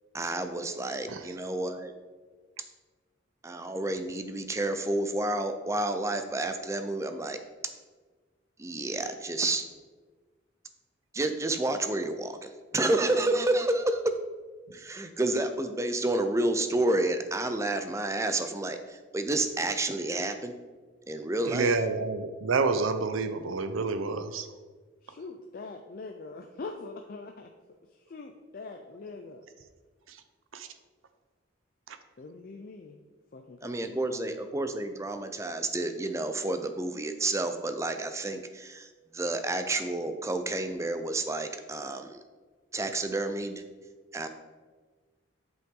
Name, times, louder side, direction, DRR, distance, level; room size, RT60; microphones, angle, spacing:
voice 1, 0.1-1.9 3.4-7.4 8.6-9.6 11.1-14.1 14.7-20.5 21.1-21.8 33.6-42.2 42.7-43.6 44.1-44.3, right 2 dB, 15° right, 8 dB, 0.4 m, -30 dB
voice 2, 21.5-24.5 30.5-30.7, right 4 dB, 85° right, 10 dB, 0.6 m, -28 dB
voice 3, 25.0-27.5 27.9-29.4 32.2-33.0 33.3-34.4, left 3 dB, 45° left, 4 dB, 0.4 m, -43 dB
7.7 x 5.7 x 3.7 m, 1.4 s
head